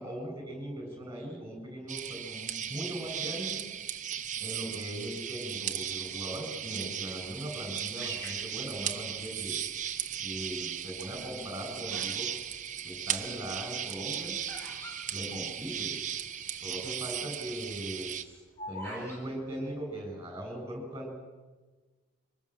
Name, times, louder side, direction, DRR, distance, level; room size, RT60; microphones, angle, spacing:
voice 1, 0.0-3.6 4.4-9.6 10.2-12.4 12.8-14.4 15.1-16.0 16.5-18.1 18.7-21.1, right 1 dB, 15° right, 2 dB, 7.7 m, -39 dB
sound 1, 1.9-18.2, right 9 dB, 35° right, 1.0 m, -37 dB
Bird vocalization bird call bird song, 8.0-9.5 10.1-10.6 11.3-12.2 12.5-16.0 16.3-16.4 16.5-16.9 17.3-19.2, right 1 dB, 10° left, 6.2 m, -45 dB
24.0 x 20.5 x 7.8 m, 1.3 s
head